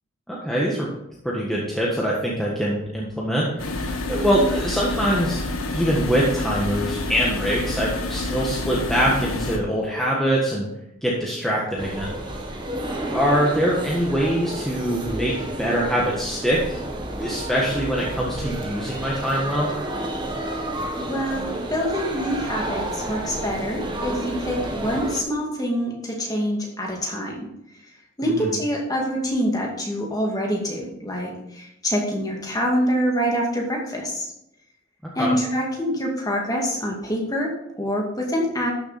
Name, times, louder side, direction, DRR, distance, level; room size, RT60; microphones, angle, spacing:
voice 1, 0.3-0.9 1.2-5.4 5.7-10.7 11.0-12.1 13.1-15.3 15.6-16.8 17.2-19.7 28.2-28.5 35.2-35.3, equal, ahead, -5 dB, 1.5 m, -23 dB
sound 1, 3.6-9.6, left 2 dB, 80° left, 1.5 m, -28 dB
voice 2, 4.1-4.5 13.0-13.2 20.9-27.5 28.2-34.3 35.2-38.7, equal, 15° left, -1 dB, 2.3 m, -26 dB
sound 2, 11.8-25.2, right 1 dB, 20° right, 1.3 m, -31 dB
12.5 x 7.0 x 4.3 m, 0.82 s
head